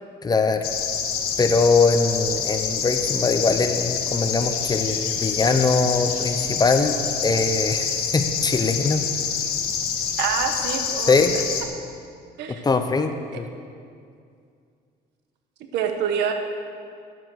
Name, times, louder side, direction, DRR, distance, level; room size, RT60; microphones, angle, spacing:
voice 1, 0.2-0.7 1.4-9.1 11.1-11.3 12.6-13.5, left 4 dB, 25° left, 8 dB, 0.9 m, -22 dB
sound 1, 0.6-11.6, left 7 dB, 70° left, 1.6 m, -27 dB
voice 2, 10.2-11.1 12.4-12.6 15.7-16.3, right 7 dB, 85° right, 6 dB, 1.2 m, -25 dB
11.5 x 8.6 x 6.4 m, 2.3 s
cardioid pair, 110°, 17 cm